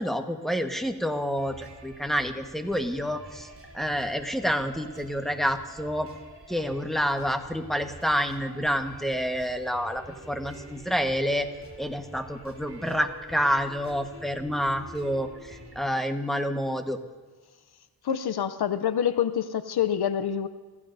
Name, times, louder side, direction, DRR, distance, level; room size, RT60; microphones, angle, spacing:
voice 1, 0.0-3.5 3.7-6.1 6.5-11.5 11.8-17.0, equal, ahead, 5 dB, 1.3 m, -28 dB
sound 1, 1.4-15.9, right 1 dB, 35° right, 2.6 m, -47 dB
voice 2, 18.0-20.5, left 9 dB, 90° left, 13 dB, 0.6 m, -26 dB
25.5 x 15.0 x 2.7 m, 1.4 s
wide cardioid pair, 55°, 37 cm